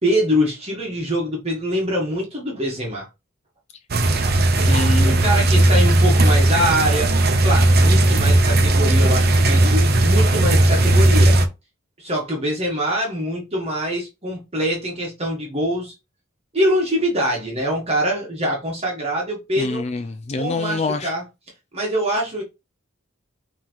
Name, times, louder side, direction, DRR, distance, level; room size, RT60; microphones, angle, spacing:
voice 1, 0.0-3.1 5.0-7.1 7.4-11.4 12.0-15.9 16.5-19.8 20.4-21.2 21.7-22.4, equal, 30° right, 1.4 m, -24 dB
sound 1, 3.9-11.5, right 1 dB, 50° right, 0.7 m, -16 dB
voice 2, 4.7-5.3 19.6-21.1, left 3 dB, 35° left, 0.4 m, -26 dB
5.7 x 3.0 x 3.0 m
head